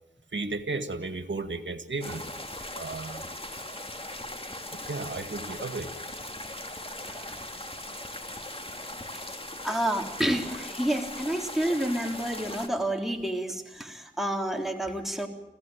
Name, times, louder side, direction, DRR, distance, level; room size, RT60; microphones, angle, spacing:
voice 1, 0.3-2.2 2.8-3.3 4.7-5.9, right 3 dB, 75° right, 8 dB, 1.9 m, -34 dB
sound 1, 2.0-12.7, left 1 dB, 30° left, 2.8 m, -39 dB
voice 2, 7.1-7.4 9.6-15.3, right 1 dB, ahead, 2 dB, 3.5 m, -29 dB
25.5 x 16.5 x 8.9 m, 0.93 s
wide cardioid pair, 45°, 19 cm